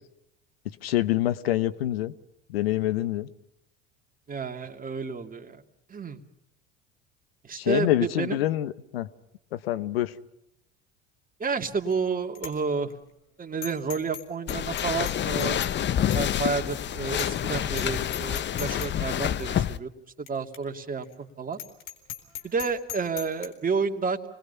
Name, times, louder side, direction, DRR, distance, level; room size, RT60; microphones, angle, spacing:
voice 1, 0.8-2.1 2.5-3.3 7.5-9.1 9.5-10.1, left 14 dB, 85° left, 14 dB, 1.0 m, -26 dB
voice 2, 4.3-5.6 5.9-6.2 7.5-8.4 11.4-12.9 13.4-15.6 16.1-19.9 20.2-21.6 22.4-24.2, right 5 dB, 30° right, 5 dB, 2.5 m, -30 dB
Bicycle bell, 11.6-12.0 12.4-12.5 12.9-13.0 13.6-14.2 14.5-15.8 16.1-16.2 16.7-16.8 17.2-17.4 17.7-17.9 18.1-18.9 19.4-19.5 20.3-20.4 20.5-20.6 21.0-21.1 21.5-23.5, left 10 dB, 60° left, 4.3 m, -38 dB
sound 1, 14.5-19.8, left 10 dB, 40° left, 0.9 m, -28 dB
28.0 x 20.5 x 5.6 m, 0.79 s
hypercardioid pair, 80°, 29 cm